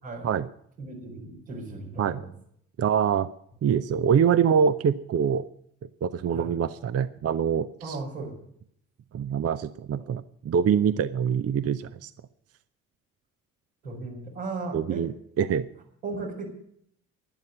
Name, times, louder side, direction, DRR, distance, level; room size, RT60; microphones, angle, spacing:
voice 1, 0.8-2.3 6.3-6.5 7.8-8.3 10.0-10.1 13.8-15.1 16.0-16.4, right 3 dB, 80° right, -3 dB, 4.7 m, -36 dB
voice 2, 2.8-3.3 3.6-5.4 6.0-8.0 9.1-12.1 14.7-15.6, right 7 dB, 35° right, 13 dB, 0.7 m, -24 dB
12.0 x 11.0 x 7.9 m, 0.68 s
figure-of-eight pair, 40°, 41 cm